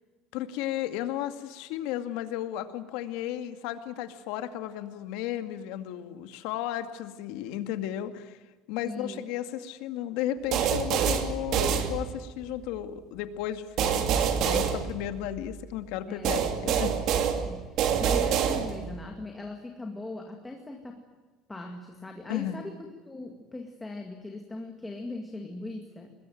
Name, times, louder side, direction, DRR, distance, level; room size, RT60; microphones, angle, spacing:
voice 1, 0.3-8.4 8.7-16.9 22.3-22.6, left 12 dB, 75° left, 9 dB, 2.2 m, -34 dB
voice 2, 8.8-9.2 16.1-16.7 17.0-21.0 21.5-22.7 23.1-26.1, left 2 dB, 10° left, 2 dB, 2.1 m, -40 dB
sound 1, 10.5-12.4 13.8-15.5 16.2-19.0, right 8 dB, 45° right, 2.6 m, -27 dB
24.5 x 21.0 x 9.3 m, 1.3 s
cardioid pair, 175°, 0 cm